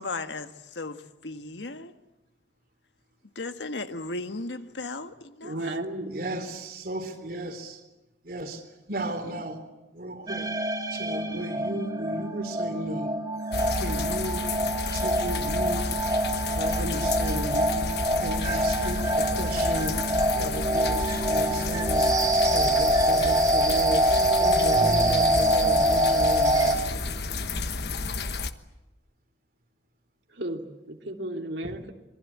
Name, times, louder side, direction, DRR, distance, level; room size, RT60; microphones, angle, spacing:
voice 1, 0.0-1.9 3.3-5.6, left 3 dB, 85° left, 1.6 m, -36 dB
voice 2, 5.4-6.2 30.3-31.9, right 1 dB, 80° right, 3.1 m, -34 dB
voice 3, 6.1-7.8 8.2-8.6 8.9-9.6 9.9-10.5 10.9-13.2 13.7-14.4 14.9-15.8 16.5-17.6 18.2-20.0 20.4-22.1 22.5-24.1 24.4-27.1, right 1 dB, 55° right, 3.7 m, -34 dB
sound 1, 10.3-26.7, right 1 dB, 20° right, 3.3 m, -25 dB
sound 2, 13.5-28.5, left 4 dB, 65° left, 1.2 m, -31 dB
sound 3, 16.5-28.2, equal, 35° left, 4.6 m, -39 dB
26.5 x 22.5 x 8.6 m
head